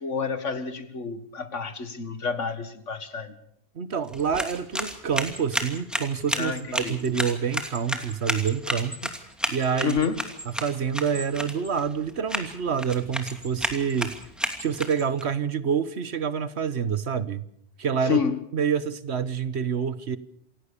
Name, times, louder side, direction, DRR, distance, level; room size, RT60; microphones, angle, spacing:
voice 1, 0.0-3.4 6.3-7.0 9.8-10.3 18.0-18.4, left 6 dB, 85° left, 2.2 m, -29 dB
voice 2, 3.7-9.1 9.5-10.0 10.5-14.1 14.6-17.4 17.8-18.2 18.5-20.2, right 7 dB, 65° right, 1.5 m, -27 dB
sound 1, 4.0-15.2, equal, ahead, 2.6 m, -33 dB
28.0 x 17.5 x 6.9 m
omnidirectional pair, 1.2 m